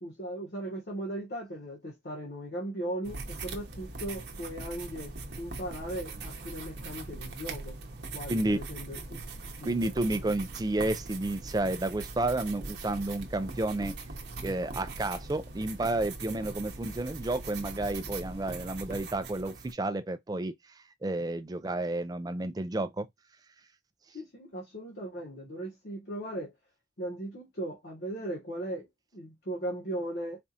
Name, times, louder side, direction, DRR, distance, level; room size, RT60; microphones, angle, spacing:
voice 1, 0.0-7.8 8.1-10.2 16.3-16.4 21.1-21.2 24.1-26.5 27.0-28.9 29.1-30.4, right 1 dB, 60° left, 1.0 m, -38 dB
sound 1, 3.0-19.7, right 3 dB, 70° right, 0.8 m, -41 dB
voice 2, 8.3-8.6 9.6-13.9 14.4-20.5 21.0-23.1, right 2 dB, 20° right, 0.4 m, -31 dB
4.3 x 2.4 x 2.7 m
head